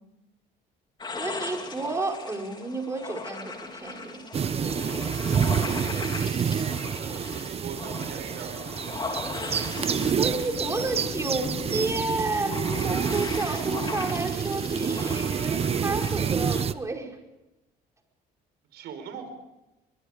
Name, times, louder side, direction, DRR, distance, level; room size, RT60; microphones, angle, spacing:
sound 1, 1.0-16.6, left 3 dB, 25° left, 3.7 m, -39 dB
voice 1, 1.2-4.2 10.2-17.2, right 2 dB, 15° right, 2 dB, 5.0 m, -31 dB
sound 2, 4.2-4.4 4.7-7.7 8.0-12.0, left 5 dB, 55° left, 4.2 m, -42 dB
sound 3, 4.3-16.7, right 7 dB, 35° right, 0.9 m, -28 dB
voice 2, 7.3-8.9 18.7-19.3, right 7 dB, 80° right, 8 dB, 5.2 m, -40 dB
23.5 x 22.0 x 5.2 m, 0.97 s
cardioid pair, 110°, 17 cm